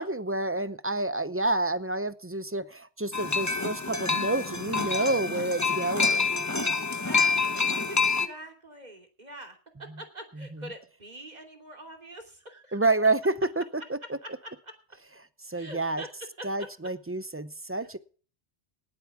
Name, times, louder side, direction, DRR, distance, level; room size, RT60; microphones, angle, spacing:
voice 1, 0.0-6.4 10.4-10.7 12.7-14.2 15.5-16.0 16.4-18.0, right 2 dB, 15° right, 14 dB, 0.6 m, -29 dB
sound 1, 3.1-8.3, left 4 dB, 15° left, 0.9 m, -27 dB
voice 2, 6.5-9.6 10.0-12.8 14.2-14.5 15.5-16.1 16.6-16.7, right 1 dB, 40° right, 5 dB, 2.9 m, -45 dB
18.5 x 8.3 x 6.0 m, 0.40 s
omnidirectional pair, 1.1 m